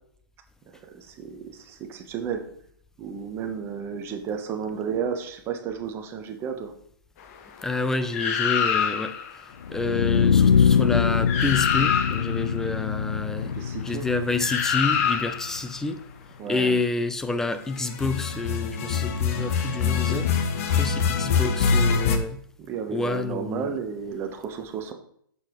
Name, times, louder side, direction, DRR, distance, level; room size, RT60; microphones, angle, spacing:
voice 1, 0.9-2.4 3.0-6.7 13.4-14.1 16.4-16.8 22.6-24.9, right 7 dB, 20° right, 1.0 m, -32 dB
voice 2, 7.6-13.5 13.8-16.0 16.5-20.3 20.7-22.4 22.9-23.7, left 3 dB, 5° left, 0.4 m, -29 dB
sound 1, 8.1-9.3 10.9-11.0 11.3-12.4 14.4-15.6 17.9-22.2, left 6 dB, 40° left, 1.0 m, -24 dB
Low spacey sound, 9.6-15.6, left 7 dB, 80° left, 0.4 m, -23 dB
8.8 x 7.0 x 3.1 m
hypercardioid pair, 145°, 12 cm